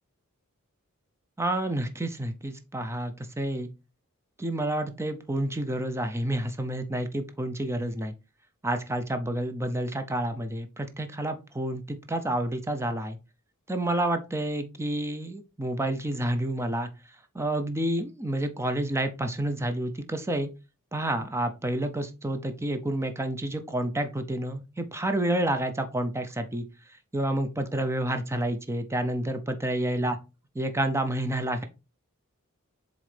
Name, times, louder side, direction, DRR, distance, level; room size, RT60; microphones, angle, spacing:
voice 1, 1.4-3.7 4.4-8.1 8.6-13.2 13.7-16.9 17.3-20.5 20.9-26.7 27.1-30.1 30.6-31.6, right 1 dB, 10° right, 8 dB, 0.6 m, -29 dB
7.4 x 3.8 x 3.4 m, 0.28 s
head